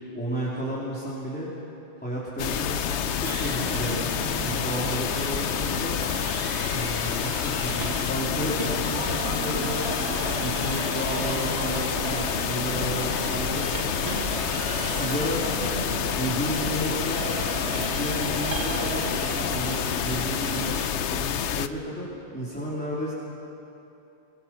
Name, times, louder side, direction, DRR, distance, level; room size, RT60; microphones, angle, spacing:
voice 1, 0.1-1.5 2.0-4.1 4.4-6.0 6.7-14.1 14.7-15.4 16.2-17.3 17.7-19.1 19.5-23.1, right 1 dB, 10° left, -7 dB, 3.0 m, -32 dB
sound 1, 2.4-21.7, left 9 dB, 80° left, 1.0 m, -28 dB
sound 2, 3.2-20.9, right 6 dB, 65° right, 1.3 m, -37 dB
sound 3, 8.4-19.9, right 2 dB, 85° right, 2.4 m, -36 dB
24.0 x 22.5 x 5.8 m, 2.9 s
omnidirectional pair, 1.2 m